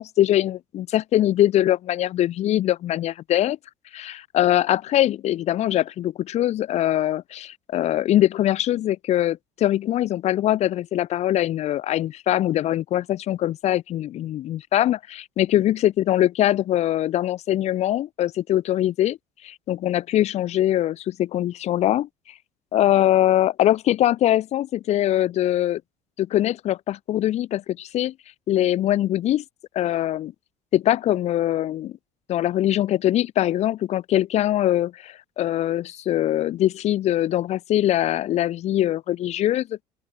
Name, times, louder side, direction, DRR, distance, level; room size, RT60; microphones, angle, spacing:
voice 1, 0.0-3.6 3.9-19.2 19.4-22.1 22.7-25.8 26.2-28.1 28.5-29.4 29.7-30.3 30.7-32.0 32.3-39.8, left 13 dB, 55° left, 3.2 m, -22 dB
open air
cardioid pair, 125°, 14 cm